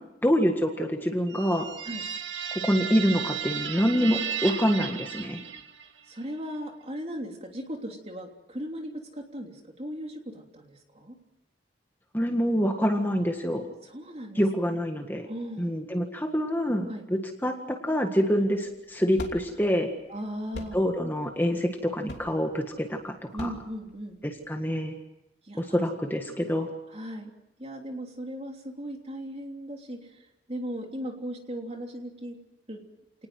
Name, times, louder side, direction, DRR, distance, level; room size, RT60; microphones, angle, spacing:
voice 1, 0.2-1.7 2.7-5.4 12.1-13.7 14.3-15.3 15.6-19.9 20.7-23.5 24.2-24.9 25.6-26.7, equal, 10° left, 4 dB, 1.7 m, -26 dB
sound 1, 1.3-6.0, right 8 dB, 80° right, 1.9 m, -34 dB
voice 2, 6.1-11.1 13.8-14.4 15.2-15.7 16.9-17.0 18.4-18.5 20.1-20.8 23.3-24.2 25.5-25.9 26.9-27.3 27.6-30.2 30.5-32.4 32.7-32.8, equal, 35° right, 2 dB, 3.1 m, -37 dB
sound 2, 18.4-24.6, left 1 dB, 65° left, 2.9 m, -43 dB
28.5 x 19.0 x 7.8 m, 0.93 s
head